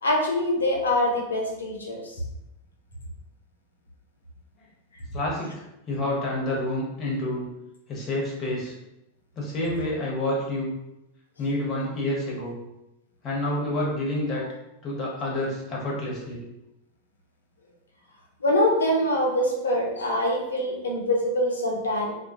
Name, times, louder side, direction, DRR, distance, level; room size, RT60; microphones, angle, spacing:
voice 1, 0.0-2.1 18.4-22.1, left 1 dB, 70° left, -1 dB, 0.5 m, -24 dB
voice 2, 5.1-7.5 7.9-8.7 9.4-10.7 11.4-12.6 13.2-14.5 14.8-16.4, left 1 dB, 30° left, -3 dB, 0.8 m, -28 dB
2.2 x 2.2 x 2.6 m, 0.91 s
figure-of-eight pair, 90°, 0 cm